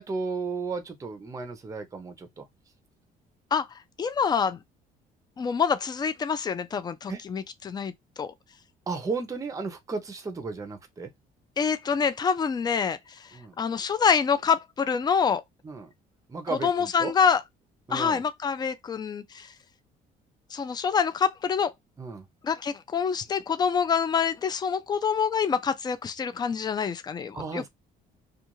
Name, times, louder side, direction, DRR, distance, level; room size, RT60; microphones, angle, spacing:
voice 1, 0.0-2.5 7.1-7.2 8.9-11.1 13.3-13.6 15.6-15.9 16.3-17.1 17.9-18.2 22.0-22.2 27.3-27.7, right 4 dB, 20° right, 0.6 m, -34 dB
voice 2, 4.0-4.6 5.4-7.9 8.2-8.3 11.6-15.4 16.6-17.4 17.9-19.5 20.5-21.7 22.4-27.7, left 6 dB, 25° left, 0.4 m, -26 dB
2.4 x 2.3 x 3.0 m
cardioid pair, 110°, 17 cm